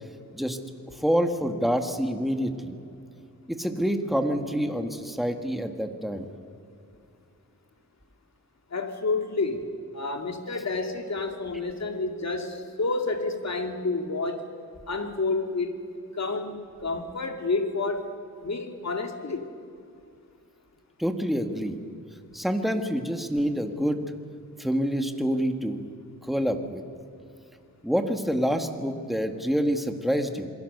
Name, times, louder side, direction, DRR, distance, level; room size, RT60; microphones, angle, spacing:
voice 1, 0.9-2.8 3.5-6.3 21.0-21.8 22.3-24.0 24.6-25.8 26.2-26.8 27.8-30.5, equal, ahead, 5 dB, 1.8 m, -27 dB
voice 2, 8.7-14.5 14.9-15.8 16.1-18.1 18.4-19.5, left 3 dB, 50° left, 5 dB, 2.4 m, -29 dB
27.5 x 22.0 x 6.7 m, 2.6 s
wide cardioid pair, 115°, 34 cm